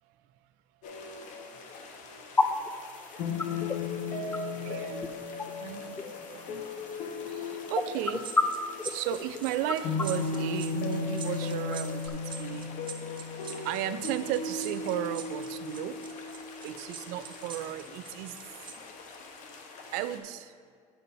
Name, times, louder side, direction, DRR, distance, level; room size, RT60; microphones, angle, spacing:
sound 1, 0.8-20.2, left 4 dB, 65° left, 1.0 m, -37 dB
sound 2, 2.4-12.1, left 3 dB, 15° left, 0.4 m, -34 dB
voice 1, 4.6-5.1 5.6-6.0 6.3-6.6 7.3-8.3 8.9-12.7 13.6-16.0 16.6-18.4 19.9-20.5, right 12 dB, 90° right, 13 dB, 0.4 m, -35 dB
sound 3, 8.2-18.7 19.1-19.3, right 7 dB, 35° right, 0.7 m, -44 dB
8.9 x 4.0 x 5.5 m, 2.1 s
cardioid pair, 135°, 14 cm